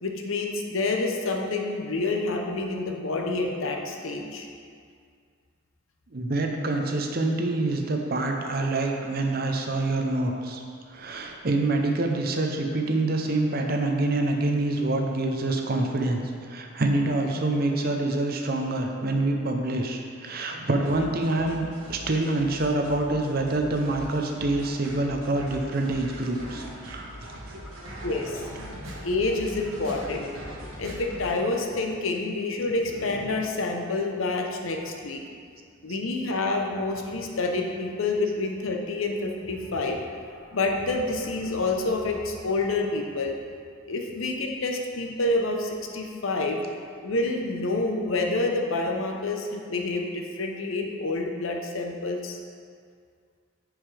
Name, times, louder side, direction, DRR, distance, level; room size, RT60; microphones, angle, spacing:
voice 1, 0.0-4.5 28.0-28.5 29.0-30.3 30.8-35.2 35.8-40.0 40.5-43.3 43.9-46.6 47.0-52.4, left 2 dB, 75° left, 2 dB, 0.8 m, -28 dB
voice 2, 6.1-10.6 10.9-16.2 16.5-27.1, right 2 dB, 45° right, 2 dB, 0.7 m, -26 dB
sound 1, 20.9-31.3, equal, 90° right, 1.2 m, -41 dB
9.0 x 5.0 x 3.4 m, 2.2 s
head